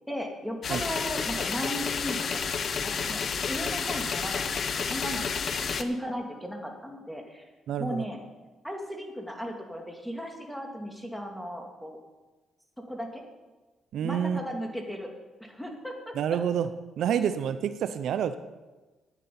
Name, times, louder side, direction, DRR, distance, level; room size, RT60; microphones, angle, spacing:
voice 1, 0.1-2.4 2.8-7.4 7.8-8.2 8.6-12.0 12.9-13.2 14.0-15.1 15.4-16.4, equal, ahead, 2 dB, 2.4 m, -36 dB
sound 1, 0.6-5.8, left 6 dB, 50° left, 0.8 m, -30 dB
voice 2, 7.7-8.1 13.9-14.4 16.1-16.7 17.0-18.4, right 9 dB, 70° right, 11 dB, 0.6 m, -28 dB
9.7 x 9.7 x 7.0 m, 1.2 s
cardioid pair, 90°, 0 cm